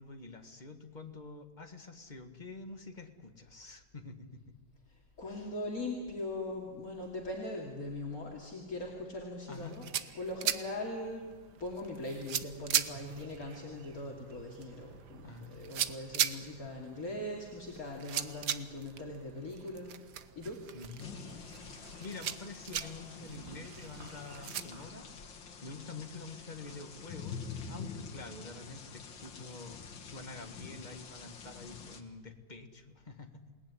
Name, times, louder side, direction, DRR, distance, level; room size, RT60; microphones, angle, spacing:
voice 1, 0.0-4.5 5.2-5.6 9.5-9.8 15.2-15.6 20.7-21.2 21.7-33.4, left 3 dB, 25° left, 5 dB, 1.9 m, -47 dB
voice 2, 5.2-11.3 11.6-20.1 20.4-21.5 23.1-23.7, left 1 dB, 50° left, -1 dB, 3.2 m, -41 dB
sound 1, 9.5-24.6, right 9 dB, 65° right, 1.5 m, -39 dB
sound 2, 20.2-28.6 29.2-29.9, equal, 35° right, 6.4 m, -60 dB
sound 3, 21.0-32.0, left 6 dB, 80° left, 2.4 m, -47 dB
27.5 x 19.0 x 10.0 m, 1.5 s
omnidirectional pair, 2.0 m